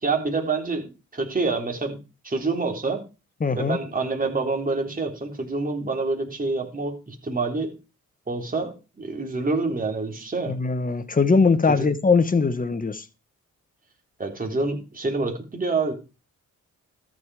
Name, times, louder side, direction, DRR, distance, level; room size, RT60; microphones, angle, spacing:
voice 1, 0.0-2.0 2.2-3.0 3.6-7.7 8.3-8.7 9.0-10.5 11.7-11.9 14.2-15.9, right 3 dB, 25° right, 3.8 m, -27 dB
voice 2, 3.4-3.8 10.5-13.0, left 4 dB, 25° left, 1.3 m, -21 dB
13.5 x 7.9 x 5.0 m
cardioid pair, 90°, 31 cm